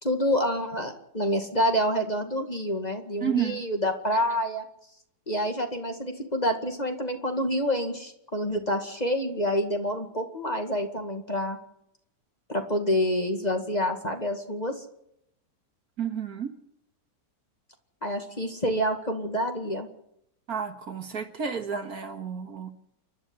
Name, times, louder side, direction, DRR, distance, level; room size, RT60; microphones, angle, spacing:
voice 1, 0.0-4.6 5.3-11.6 12.5-14.8 18.0-19.9, equal, 25° left, 4 dB, 2.1 m, -27 dB
voice 2, 3.2-3.6 16.0-16.5 20.5-22.7, right 7 dB, 55° right, 6 dB, 2.0 m, -31 dB
29.5 x 12.0 x 8.0 m, 0.78 s
omnidirectional pair, 2.0 m